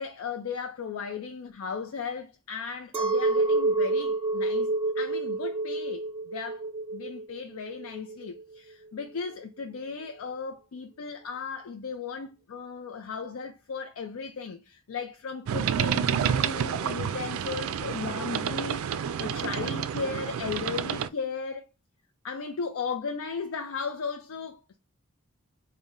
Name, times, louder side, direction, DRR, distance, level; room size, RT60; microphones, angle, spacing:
voice 1, 0.0-6.7 6.9-21.6 22.2-24.8, left 5 dB, 80° left, 0.4 m, -36 dB
Chink clink, 2.9-8.4, right 2 dB, 25° right, 0.6 m, -28 dB
sound 1, 15.5-21.1, right 8 dB, 80° right, 0.3 m, -29 dB
4.0 x 2.1 x 3.6 m
head